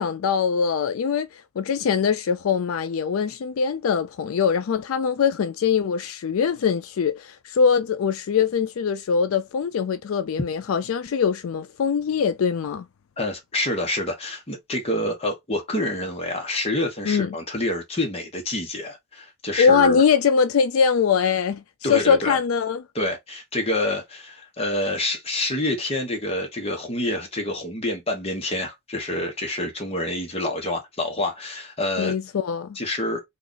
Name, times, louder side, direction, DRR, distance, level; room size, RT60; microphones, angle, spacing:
voice 1, 0.0-12.9 17.0-17.3 19.6-21.6 21.9-22.8 32.0-32.8, left 6 dB, 85° left, 0.4 m, -22 dB
voice 2, 13.2-20.0 21.8-22.4 22.9-32.1 32.7-33.2, left 1 dB, 30° left, 1.0 m, -27 dB
2.9 x 2.4 x 3.8 m
head